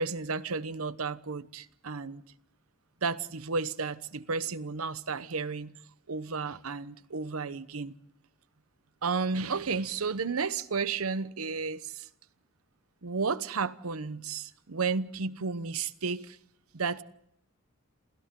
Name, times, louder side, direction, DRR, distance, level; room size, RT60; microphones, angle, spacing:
voice 1, 0.0-2.2 3.0-5.7 6.1-7.9 9.0-12.1 13.0-16.4 16.7-17.0, right 4 dB, 90° right, 1.0 m, -32 dB
28.5 x 27.5 x 3.8 m
head